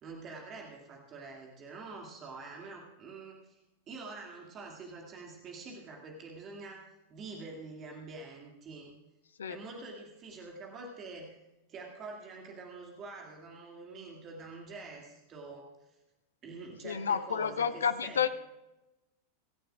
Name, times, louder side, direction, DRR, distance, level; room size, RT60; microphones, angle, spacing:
voice 1, 0.0-3.6 3.9-9.0 9.5-11.4 11.7-15.9 16.4-18.3, right 3 dB, 30° right, 0 dB, 2.4 m, -46 dB
voice 2, 16.8-18.3, left 7 dB, 70° left, 15 dB, 0.6 m, -30 dB
24.5 x 14.0 x 2.5 m, 1.0 s
figure-of-eight pair, 90°, 0 cm